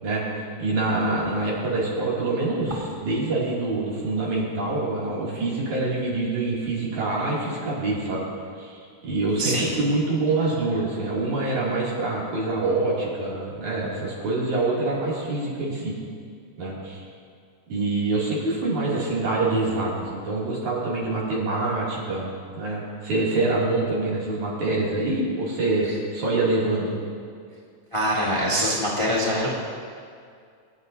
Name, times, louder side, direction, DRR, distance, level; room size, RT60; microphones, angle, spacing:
voice 1, 0.6-8.3 8.6-15.9 16.6-17.1 17.7-22.3 22.6-26.9, right 2 dB, 85° right, -6 dB, 4.1 m, -25 dB
voice 2, 9.4-9.7 27.9-29.6, equal, 15° left, -6 dB, 1.3 m, -24 dB
22.5 x 9.4 x 2.7 m, 2.2 s
omnidirectional pair, 3.3 m